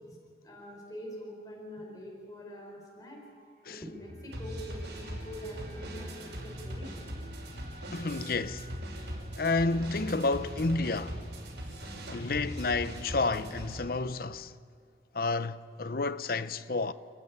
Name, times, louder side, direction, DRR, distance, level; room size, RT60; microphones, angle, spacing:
voice 1, 0.4-3.2 3.7-7.1, equal, 20° left, 4.5 m, -44 dB
sound 1, 3.2-11.5 11.8-12.0, right 2 dB, 45° right, 4.1 m, -58 dB
sound 2, 4.0-13.8, equal, 80° right, 5.7 m, -40 dB
voice 2, 7.9-8.7 9.4-11.3 11.8-14.5 15.1-16.9, left 3 dB, 55° left, 0.7 m, -30 dB
29.5 x 13.0 x 9.7 m
head